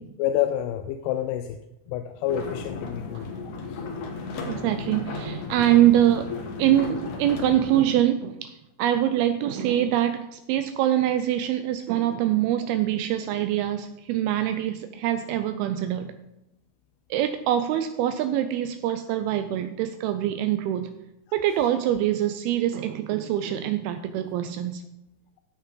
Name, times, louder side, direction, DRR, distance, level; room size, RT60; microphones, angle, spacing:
voice 1, 0.2-1.6 1.9-3.3 3.7-3.8, left 11 dB, 85° left, 8 dB, 2.6 m, -28 dB
sound 1, 2.3-7.8, left 4 dB, 65° left, 2.3 m, -35 dB
voice 2, 4.4-16.2 17.1-21.0 21.3-24.8, right 12 dB, 85° right, 9 dB, 2.4 m, -24 dB
15.0 x 5.4 x 3.8 m, 0.89 s
omnidirectional pair, 4.5 m